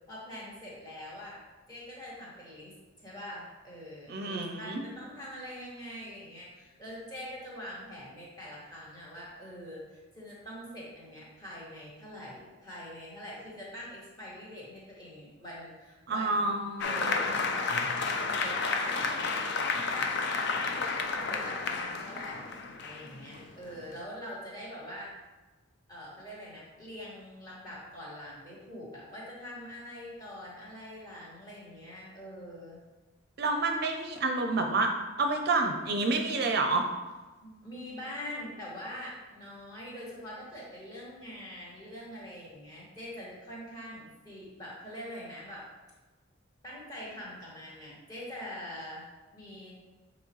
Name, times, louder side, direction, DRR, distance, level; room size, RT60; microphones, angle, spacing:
voice 1, 0.1-1.4 1.7-17.8 18.0-20.2 20.5-22.5 22.8-25.1 25.9-32.8 37.4-45.7 46.6-49.0 49.3-49.7, equal, 20° left, -6 dB, 2.0 m, -44 dB
voice 2, 4.1-4.8 16.1-17.3 33.4-34.9 35.2-36.8, right 3 dB, 50° right, 4 dB, 0.5 m, -29 dB
Applause, 16.8-24.0, left 4 dB, 55° left, 0.5 m, -31 dB
8.1 x 4.2 x 3.1 m, 1.2 s
head